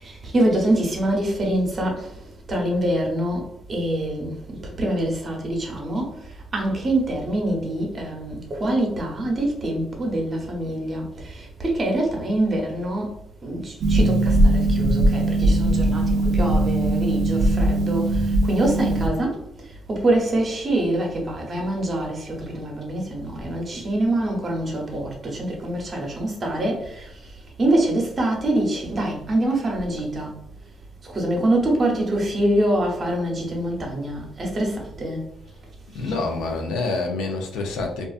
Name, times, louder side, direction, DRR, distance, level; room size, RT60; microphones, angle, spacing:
voice 1, 0.0-2.1 2.5-6.2 6.5-13.1 13.4-19.4 19.9-27.1 27.6-30.3 31.0-35.2, right 1 dB, 40° right, 0 dB, 0.8 m, -25 dB
Harp, 13.8-19.1, right 1 dB, 75° right, 0.4 m, -20 dB
voice 2, 35.9-38.1, left 3 dB, 90° left, 3 dB, 0.5 m, -27 dB
2.4 x 2.4 x 2.4 m, 0.73 s
cardioid pair, 90°, 0 cm